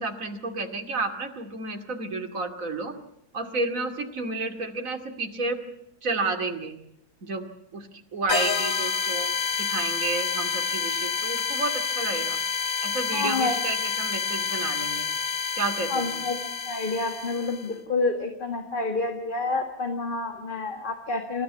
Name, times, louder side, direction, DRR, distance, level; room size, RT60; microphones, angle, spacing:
voice 1, 0.0-2.9 3.3-5.6 6.0-6.7 7.2-9.3 9.6-12.4 12.8-15.1 15.5-16.2, right 3 dB, 55° right, 5 dB, 2.8 m, -31 dB
sound 1, 8.3-17.7, left 6 dB, 65° left, 1.9 m, -28 dB
voice 2, 13.1-13.6 15.9-21.4, left 3 dB, 30° left, 5 dB, 1.9 m, -28 dB
26.5 x 14.0 x 9.4 m, 0.77 s
omnidirectional pair, 1.7 m